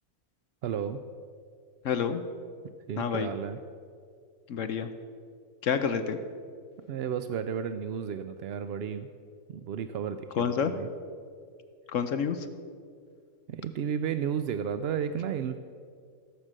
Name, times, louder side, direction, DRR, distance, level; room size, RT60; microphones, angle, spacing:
voice 1, 0.6-1.0 2.6-3.6 6.9-9.1 9.5-10.9 13.5-15.6, right 8 dB, 70° right, 10 dB, 0.6 m, -33 dB
voice 2, 1.8-2.2 3.0-3.3 4.5-4.9 5.6-6.2 10.4-10.7 11.9-12.4, left 7 dB, 65° left, 9 dB, 1.0 m, -28 dB
16.0 x 6.6 x 7.4 m, 2.2 s
omnidirectional pair, 1.5 m